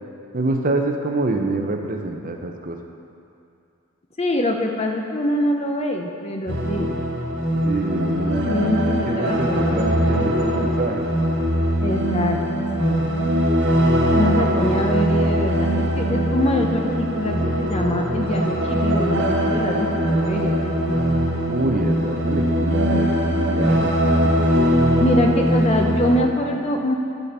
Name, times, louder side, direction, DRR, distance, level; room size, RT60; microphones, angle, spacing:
voice 1, 0.3-2.8 7.6-8.5 9.1-11.1 14.2-14.7 21.5-23.9 24.2-24.6, right 2 dB, 40° right, 3 dB, 0.7 m, -26 dB
voice 2, 4.2-6.9 8.5-9.8 11.8-13.0 14.1-21.0 25.0-27.0, left 1 dB, 30° left, 3 dB, 0.7 m, -24 dB
sound 1, 6.5-26.2, equal, 55° right, 1.5 m, -21 dB
11.0 x 5.2 x 6.7 m, 2.6 s
head